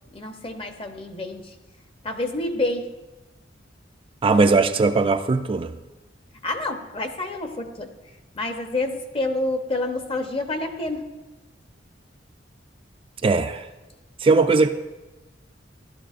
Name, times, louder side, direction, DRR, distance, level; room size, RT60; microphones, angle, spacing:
voice 1, 0.1-1.5 2.0-2.9 6.4-7.9 8.3-11.1, left 2 dB, 30° left, 6 dB, 0.9 m, -28 dB
voice 2, 4.2-5.7 13.2-13.6 14.2-14.7, right 3 dB, 30° right, 7 dB, 0.4 m, -19 dB
15.0 x 12.0 x 2.5 m, 1.1 s
head